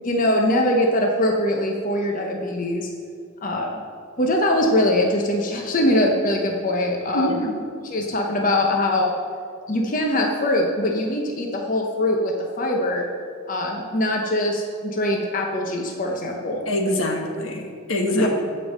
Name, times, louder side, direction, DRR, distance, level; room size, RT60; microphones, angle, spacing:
voice 1, 0.0-2.9 3.4-3.8 4.2-7.4 7.8-9.1 9.7-13.1 13.5-16.6 18.1-18.3, left 1 dB, 40° left, 1 dB, 0.9 m, -22 dB
voice 2, 7.1-7.6 16.7-18.3, left 1 dB, 85° left, 2 dB, 1.6 m, -24 dB
14.5 x 5.5 x 6.5 m, 2.3 s
head